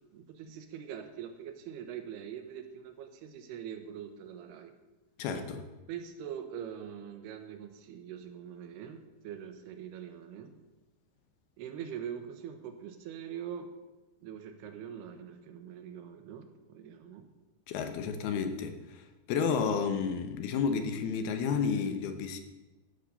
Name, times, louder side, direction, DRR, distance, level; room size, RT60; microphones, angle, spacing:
voice 1, 0.1-4.8 5.9-10.6 11.6-13.7 14.2-17.3, right 8 dB, 90° right, 7 dB, 3.1 m, -43 dB
voice 2, 5.2-5.7 17.7-22.4, left 6 dB, 80° left, 7 dB, 2.9 m, -31 dB
13.0 x 6.5 x 6.8 m, 1.1 s
omnidirectional pair, 4.5 m